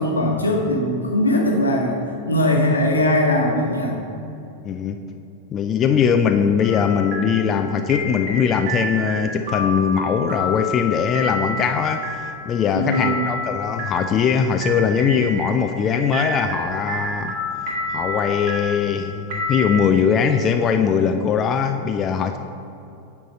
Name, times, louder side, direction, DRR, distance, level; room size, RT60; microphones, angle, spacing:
voice 1, 0.0-2.0 2.2-4.0 12.7-13.3, left 1 dB, 80° left, 0 dB, 1.2 m, -20 dB
voice 2, 4.6-5.0 5.5-17.4 17.9-22.4, left 7 dB, 30° left, 6 dB, 0.4 m, -21 dB
sound 1, 6.6-19.8, left 1 dB, 45° right, 2.0 m, -29 dB
9.0 x 4.5 x 5.4 m, 2.7 s
figure-of-eight pair, 90°, 0 cm